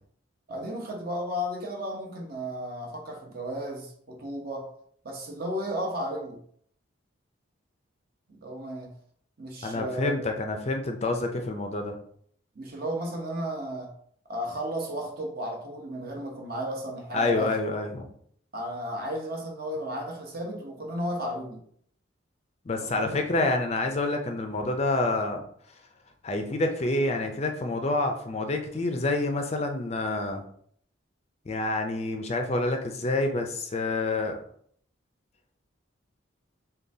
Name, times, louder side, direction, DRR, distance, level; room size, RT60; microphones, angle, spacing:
voice 1, 0.5-4.7 5.0-6.4 8.3-8.9 9.4-10.2 12.6-13.9 14.3-17.5 18.5-21.6 22.9-23.1, equal, 50° right, 0 dB, 0.8 m, -34 dB
voice 2, 9.6-12.0 17.1-18.1 22.7-25.4 26.2-30.4 31.5-34.4, left 2 dB, 30° left, 5 dB, 0.4 m, -28 dB
6.6 x 2.3 x 2.7 m, 0.63 s
head